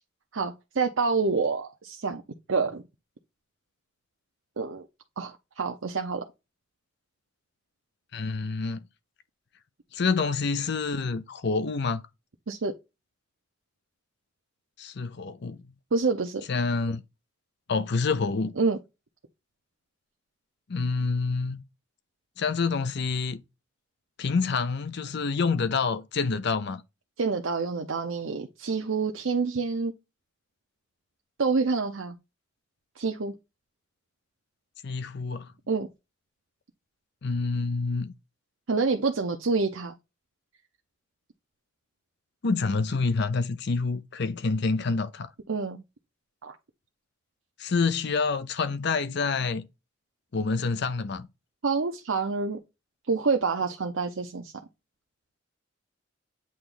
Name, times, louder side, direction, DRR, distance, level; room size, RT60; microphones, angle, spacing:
voice 1, 0.3-2.2 2.5-2.8 4.6-4.9 5.2-6.2 12.5-12.7 15.9-16.4 18.6-18.8 27.2-29.9 31.4-32.2 33.0-33.3 35.7-35.9 38.7-39.9 45.5-45.8 46.4-46.6 51.6-52.6 53.1-54.5, right 4 dB, 80° right, 0.8 m, -27 dB
voice 2, 8.1-8.8 9.9-12.0 14.8-15.6 16.5-17.0 17.7-18.5 20.7-21.6 22.4-23.4 24.2-26.8 34.8-35.5 37.2-38.1 42.4-45.3 47.6-49.7 50.3-51.3, left 4 dB, 60° left, 0.6 m, -27 dB
8.6 x 3.0 x 3.9 m
head